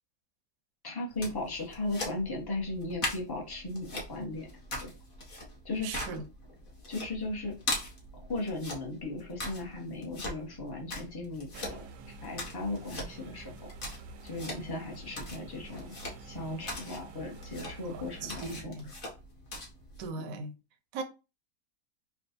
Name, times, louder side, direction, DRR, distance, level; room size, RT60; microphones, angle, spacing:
voice 1, 0.8-4.5 4.8-4.9 5.6-6.1 6.9-7.6 8.1-11.9 12.2-13.5 14.2-18.8, left 2 dB, 20° left, 0.8 m, -37 dB
sound 1, 1.1-20.1, left 1 dB, 35° left, 1.1 m, -41 dB
voice 2, 5.8-6.2 17.8-19.0 20.0-20.5 20.9-21.0, right 4 dB, 65° right, 1.0 m, -39 dB
sound 2, 11.5-18.6, right 3 dB, 85° right, 1.2 m, -49 dB
3.5 x 2.4 x 4.1 m
omnidirectional pair, 1.8 m